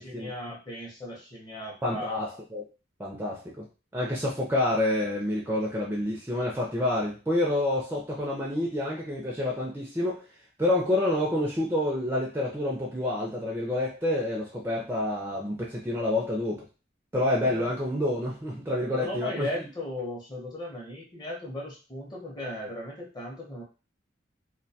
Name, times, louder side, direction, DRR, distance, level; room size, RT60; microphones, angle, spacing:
voice 1, 0.0-2.2 17.4-17.7 18.9-23.6, left 1 dB, 20° left, -2 dB, 0.7 m, -37 dB
voice 2, 1.8-2.6 3.0-3.6 3.9-10.2 10.6-16.6 17.1-19.5, left 1 dB, 10° right, -3 dB, 0.4 m, -28 dB
2.2 x 2.2 x 2.7 m, 0.33 s
head